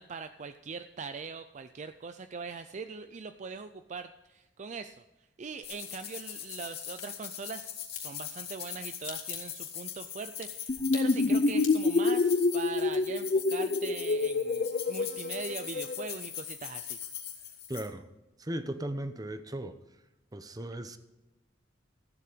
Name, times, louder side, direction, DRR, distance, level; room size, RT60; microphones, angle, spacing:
voice 1, 0.0-5.0 5.4-17.0, right 5 dB, 40° right, 9 dB, 0.4 m, -41 dB
sound 1, 5.6-17.9, left 9 dB, 60° left, 2.5 m, -41 dB
Crack, 6.6-7.0 7.9-14.2 14.5-15.2 15.5-15.6, left 9 dB, 90° left, 3.1 m, -46 dB
sound 2, 10.7-16.1, left 3 dB, 40° left, 0.5 m, -27 dB
voice 2, 17.7-18.0 18.4-19.8 20.3-21.0, right 1 dB, 20° right, 10 dB, 0.8 m, -37 dB
14.5 x 8.5 x 5.1 m, 1.0 s
head